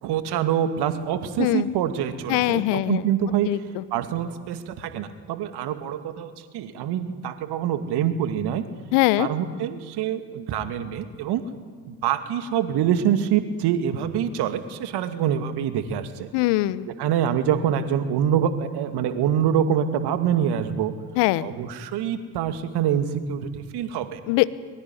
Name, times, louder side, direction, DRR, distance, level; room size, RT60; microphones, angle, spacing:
voice 1, 0.0-3.5 3.9-8.6 9.2-11.4 11.9-16.3 17.0-20.9 21.4-24.2, right 9 dB, 55° right, 9 dB, 2.4 m, -25 dB
voice 2, 2.3-3.0 3.4-3.8 8.9-9.3 16.3-16.9 21.2-21.5 24.3-24.5, left 18 dB, 60° left, 18 dB, 1.1 m, -22 dB
22.5 x 22.0 x 9.7 m, 1.6 s
hypercardioid pair, 65°, 47 cm